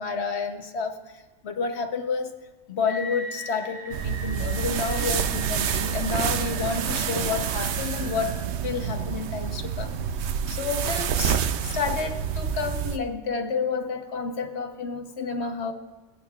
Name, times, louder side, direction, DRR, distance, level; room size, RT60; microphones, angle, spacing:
voice 1, 0.0-2.3 2.7-15.7, left 5 dB, 60° left, 6 dB, 1.2 m, -30 dB
sound 1, 2.9-8.4, left 1 dB, 35° left, 1.4 m, -40 dB
sound 2, 3.9-13.0, right 8 dB, 70° right, 0.8 m, -28 dB
26.0 x 9.0 x 2.4 m, 1.2 s
omnidirectional pair, 1.3 m